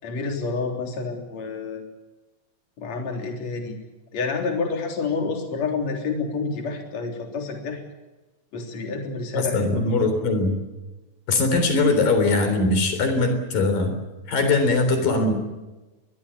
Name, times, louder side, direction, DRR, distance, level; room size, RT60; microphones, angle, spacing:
voice 1, 0.0-1.8 2.8-3.8 4.1-7.8 8.5-9.8 14.5-14.7, left 4 dB, 50° left, 3 dB, 4.7 m, -28 dB
voice 2, 9.3-10.6 11.3-13.9 14.3-15.3, left 3 dB, 80° left, 8 dB, 5.4 m, -21 dB
23.0 x 21.5 x 8.6 m, 1.1 s
omnidirectional pair, 3.9 m